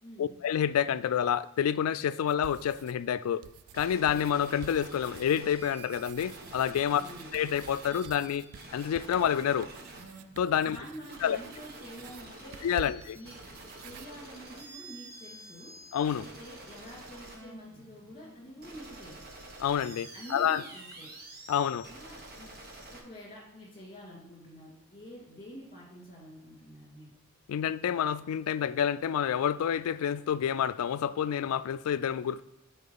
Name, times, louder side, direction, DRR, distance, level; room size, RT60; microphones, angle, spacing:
voice 1, 0.2-3.4 3.7-7.0 7.3-8.5 8.7-9.7 10.4-10.8 11.2-11.4 12.6-13.2 15.9-16.2 19.6-20.6 21.5-21.9 27.5-32.4, left 9 dB, 80° left, 0.3 m, -28 dB
sound 1, 2.3-3.1 3.4-14.1, right 8 dB, 85° right, 0.3 m, -50 dB
sound 2, 3.7-23.0, right 2 dB, 45° right, 1.1 m, -48 dB
voice 2, 7.0-7.3 10.6-13.3 13.8-15.7 16.2-19.2 20.1-21.1 21.8-22.5 23.0-27.1, equal, 25° left, 2.6 m, -48 dB
8.3 x 4.5 x 4.0 m
head